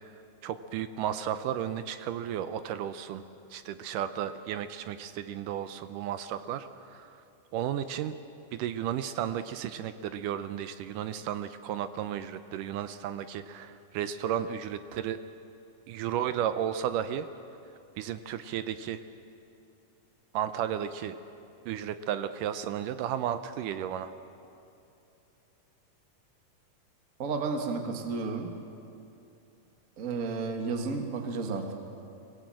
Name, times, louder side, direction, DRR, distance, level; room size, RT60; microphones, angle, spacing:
voice 1, 0.4-3.2 3.5-7.1 7.5-8.2 8.5-15.2 15.9-17.3 18.0-19.0 20.3-21.2 21.7-24.1, right 10 dB, 80° right, 11 dB, 2.2 m, -33 dB
voice 2, 27.2-28.5 30.0-31.8, right 4 dB, 40° right, 4 dB, 1.2 m, -32 dB
25.0 x 18.0 x 7.7 m, 2.7 s
omnidirectional pair, 3.9 m